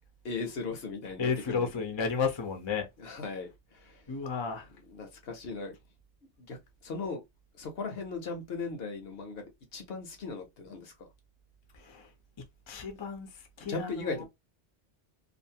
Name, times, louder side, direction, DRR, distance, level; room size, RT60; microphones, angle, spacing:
voice 1, 0.2-1.7 3.0-4.1 4.9-5.8 6.4-7.2 7.5-10.9 13.7-14.2, left 4 dB, 60° left, 0.9 m, -38 dB
voice 2, 1.2-2.9 4.1-4.7 11.7-12.1 12.4-14.2, left 5 dB, 35° left, 0.5 m, -33 dB
2.5 x 2.5 x 2.7 m
omnidirectional pair, 1.2 m